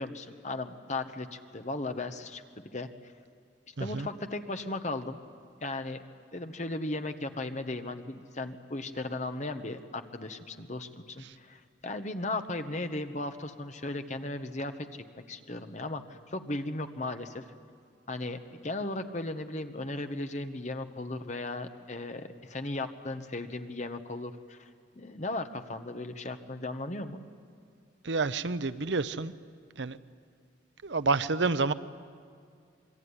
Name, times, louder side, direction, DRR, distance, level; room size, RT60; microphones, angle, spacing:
voice 1, 0.0-2.4 2.7-2.9 3.8-5.2 5.6-6.0 6.3-17.4 18.1-24.7 24.9-27.2, left 2 dB, 40° left, 7 dB, 1.3 m, -36 dB
voice 2, 3.8-4.1 11.3-11.4 28.0-29.3 29.8-30.0 30.8-31.7, right 3 dB, 65° right, 14 dB, 0.8 m, -29 dB
27.0 x 22.0 x 9.9 m, 2.3 s
head